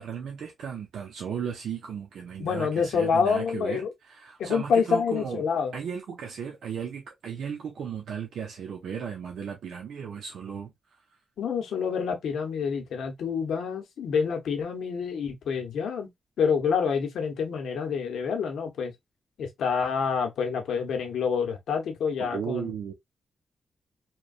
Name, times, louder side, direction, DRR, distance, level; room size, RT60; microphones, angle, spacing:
voice 1, 0.0-5.4 5.7-10.7 22.2-22.9, right 7 dB, 85° right, 0.6 m, -35 dB
voice 2, 2.4-3.9 4.4-5.7 11.4-16.1 16.4-18.9 19.4-22.7, left 6 dB, 90° left, 0.8 m, -27 dB
3.0 x 2.2 x 2.4 m
wide cardioid pair, 130°, 0 cm